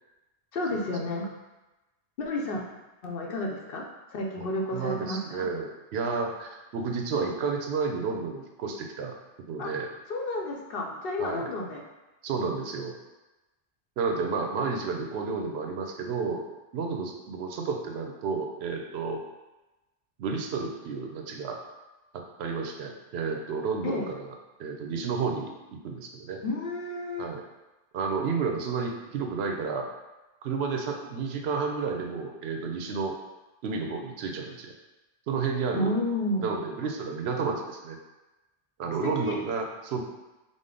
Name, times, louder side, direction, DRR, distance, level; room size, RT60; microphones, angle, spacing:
voice 1, 0.5-1.3 2.2-2.6 3.0-3.8 4.1-5.5 9.6-9.7 10.1-11.8 23.8-24.1 26.4-27.3 35.7-36.6 39.0-39.4, left 2 dB, 65° left, 0 dB, 0.8 m, -31 dB
voice 2, 4.7-9.1 9.5-9.9 11.2-11.5 12.2-12.9 14.0-16.4 16.7-19.2 20.2-21.6 22.4-24.2 24.6-26.4 27.2-27.4 27.9-29.9 30.4-33.1 33.6-34.7 35.3-35.9 36.4-38.0 38.8-40.0, right 5 dB, 80° right, 2 dB, 0.8 m, -31 dB
5.1 x 2.1 x 3.7 m, 1.1 s
omnidirectional pair, 1.1 m